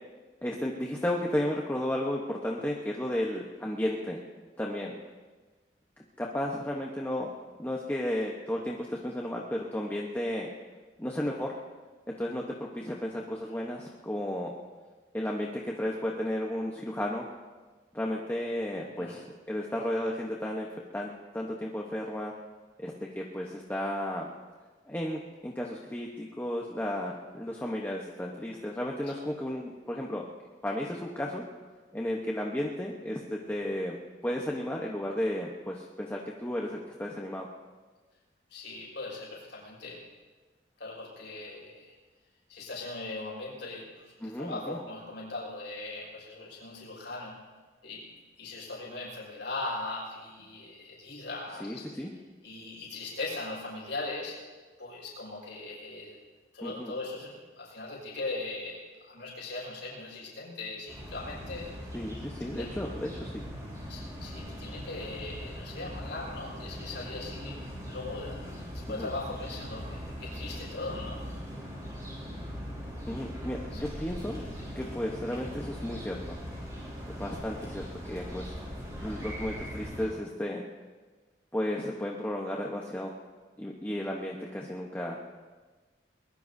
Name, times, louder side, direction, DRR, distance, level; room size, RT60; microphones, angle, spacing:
voice 1, 0.4-4.2 4.6-4.9 6.2-7.3 7.6-10.5 11.0-11.6 12.2-14.5 15.1-17.3 17.9-20.7 20.9-22.3 22.8-24.3 24.9-30.3 30.6-31.4 31.9-34.0 34.2-37.5 44.2-44.8 51.6-52.1 56.6-56.9 61.9-63.4 68.9-69.1 73.1-74.4 74.7-76.4 77.1-78.6 78.9-80.6 81.5-83.2 83.6-85.2, left 1 dB, 10° left, -2 dB, 1.0 m, -33 dB
voice 2, 38.5-40.0 40.8-41.9 42.5-47.4 47.8-48.1 48.4-51.8 52.4-54.4 54.8-56.2 56.5-61.7 62.5-62.7 63.9-71.2 73.7-73.8 74.4-74.5, left 2 dB, 75° left, -5 dB, 5.5 m, -39 dB
sound 1, 60.9-80.0, equal, 20° right, 5.4 m, -40 dB
22.5 x 21.0 x 2.7 m, 1.3 s
head